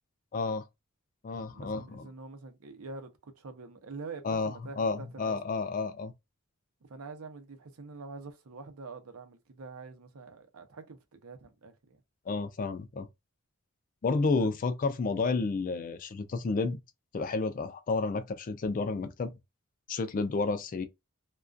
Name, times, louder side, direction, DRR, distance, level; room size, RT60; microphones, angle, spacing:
voice 1, 0.3-0.7 1.2-2.1 4.2-6.1 12.3-13.1 14.0-16.8 17.1-19.3 19.9-20.8, left 3 dB, 40° left, 0.3 m, -31 dB
voice 2, 1.5-5.4 6.9-12.0 14.4-14.6, right 4 dB, 80° right, 0.6 m, -45 dB
2.3 x 2.2 x 2.5 m
head